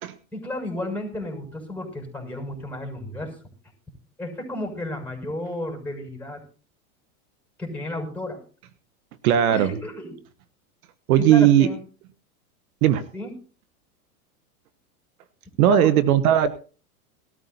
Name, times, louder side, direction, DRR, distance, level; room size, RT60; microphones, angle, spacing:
voice 1, 0.3-3.4 4.2-6.4 7.6-8.4 9.5-10.1 11.2-11.8 13.1-13.3 15.7-15.9, left 1 dB, 5° left, 2 dB, 6.4 m, -32 dB
voice 2, 9.2-9.7 11.1-11.7 12.8-13.1 15.6-16.5, right 10 dB, 70° right, 14 dB, 1.2 m, -17 dB
19.5 x 13.5 x 2.8 m, 0.38 s
hypercardioid pair, 110°, 45 cm